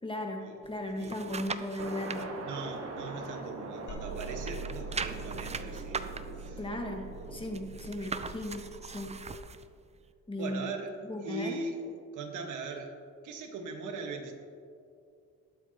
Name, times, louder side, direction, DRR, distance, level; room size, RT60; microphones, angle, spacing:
voice 1, 0.0-2.3 6.6-7.0 7.3-9.2 10.3-10.6 11.0-11.6, left 1 dB, 15° left, 2 dB, 1.5 m, -36 dB
sound 1, 0.6-2.2 2.7-3.8 4.1-9.7 10.1-10.2, right 5 dB, 20° right, 0.5 m, -40 dB
voice 2, 1.0-1.3 2.4-6.6 7.1-7.3 10.4-11.8 12.1-13.0 13.2-14.3, right 3 dB, 80° right, 4 dB, 1.6 m, -40 dB
sound 2, 1.8-9.3, right 3 dB, 50° right, 1.6 m, -43 dB
sound 3, 3.9-9.4, right 4 dB, 75° left, 1.6 m, -44 dB
20.5 x 7.9 x 3.0 m, 2.4 s
cardioid pair, 90°, 30 cm